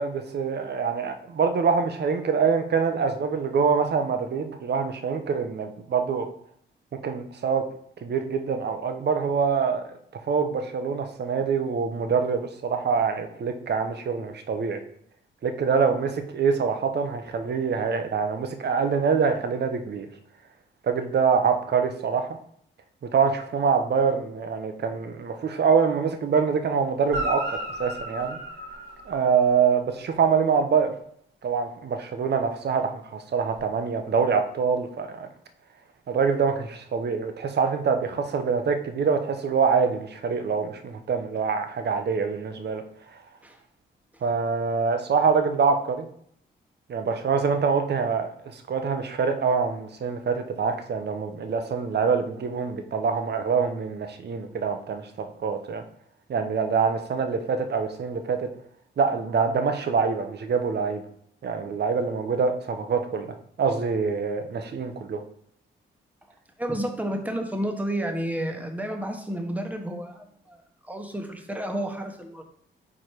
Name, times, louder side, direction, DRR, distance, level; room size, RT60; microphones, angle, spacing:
voice 1, 0.0-6.3 7.0-7.6 8.0-9.9 10.3-14.8 15.4-20.1 20.8-22.3 23.1-28.4 29.1-30.9 31.4-35.3 36.1-42.8 44.2-46.1 46.9-55.8 56.3-58.5 59.0-61.0 61.4-65.2, right 5 dB, 55° right, 7 dB, 0.8 m, -25 dB
Guitar, 27.0-29.6 33.5-33.6, right 1 dB, 85° right, 1.7 m, -33 dB
voice 2, 66.6-72.4, right 1 dB, 5° right, 3 dB, 1.2 m, -31 dB
4.8 x 4.2 x 4.6 m, 0.66 s
cardioid pair, 75°, 21 cm